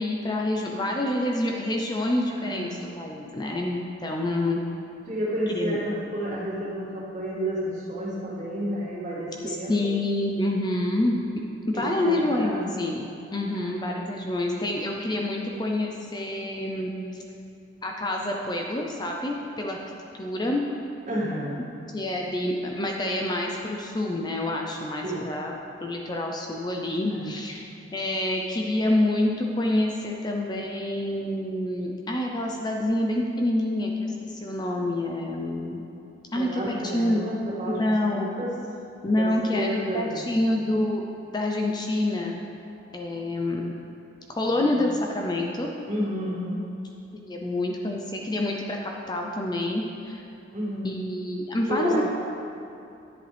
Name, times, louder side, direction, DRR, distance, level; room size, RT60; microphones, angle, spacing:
voice 1, 0.0-2.7 3.0-4.6 5.5-5.8 9.4-11.2 11.7-17.2 17.8-19.8 20.2-20.6 21.9-25.5 25.8-35.8 36.3-37.2 37.7-38.3 39.0-41.0 41.3-42.4 42.9-43.7 44.3-45.7 47.2-50.2 50.8-52.0, left 1 dB, 20° left, 0 dB, 0.6 m, -27 dB
voice 2, 2.3-2.7 5.1-9.9 11.7-12.8 13.6-14.1 21.1-21.7 25.0-25.2 27.2-27.3 36.3-38.5 39.1-40.2 40.7-40.8 44.5-44.6 45.9-46.7 50.5-51.1 51.7-52.0, right 1 dB, 40° right, -6 dB, 2.4 m, -31 dB
11.0 x 10.0 x 3.4 m, 2.7 s
head